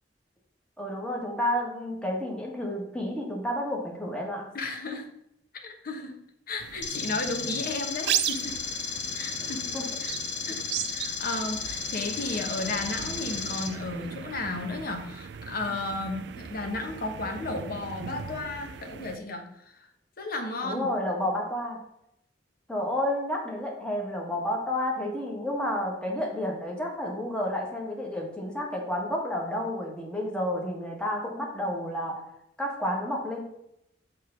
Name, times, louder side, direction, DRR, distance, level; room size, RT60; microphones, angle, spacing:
voice 1, 0.8-4.5 9.7-9.8 20.6-21.8 22.7-32.2 32.6-33.4, left 1 dB, 5° left, -1 dB, 1.3 m, -30 dB
voice 2, 4.5-5.1 5.6-6.2 6.5-8.6 9.1-9.7 10.0-10.2 10.5-19.9 20.2-20.9, left 2 dB, 55° left, 3 dB, 1.1 m, -34 dB
sound 1, 6.6-19.2, right 10 dB, 65° right, 0.3 m, -37 dB
sound 2, 6.8-13.7, left 6 dB, 90° left, 1.0 m, -34 dB
6.4 x 3.3 x 5.8 m, 0.80 s
head